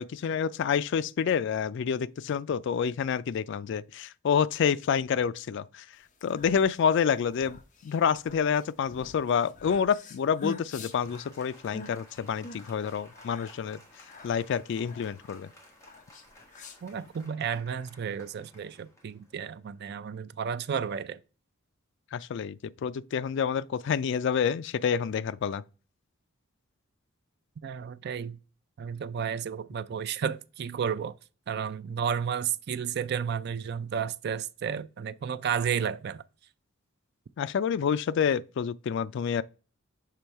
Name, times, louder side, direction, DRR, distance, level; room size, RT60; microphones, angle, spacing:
voice 1, 0.0-5.9 6.2-13.8 14.2-15.5 22.1-22.6 22.8-25.6 37.4-39.4, left 7 dB, 60° left, 0.3 m, -28 dB
sound 1, 6.1-17.3, left 2 dB, 40° left, 0.7 m, -46 dB
Applause, 10.9-19.9, left 1 dB, 15° left, 1.4 m, -56 dB
voice 2, 16.8-21.2 27.6-28.4 28.8-31.2 31.5-36.2, right 7 dB, 50° right, 0.4 m, -32 dB
6.8 x 3.0 x 4.5 m
head